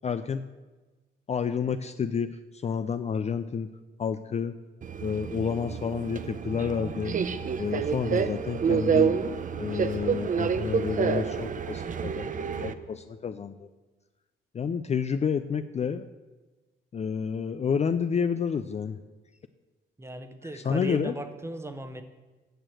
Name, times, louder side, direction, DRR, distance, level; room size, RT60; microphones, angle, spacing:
voice 1, 0.0-0.4 1.3-3.7 4.0-4.6 5.0-7.1 7.6-9.2 9.6-13.7 14.5-16.0 16.9-19.0 20.5-21.2, left 6 dB, 35° left, 10 dB, 0.5 m, -30 dB
Subway metro underground, 4.8-12.7, right 6 dB, 40° right, 0.6 m, -28 dB
voice 2, 20.0-22.0, right 1 dB, 15° right, 9 dB, 1.0 m, -37 dB
9.1 x 6.3 x 7.8 m, 1.2 s
cardioid pair, 90°, 20 cm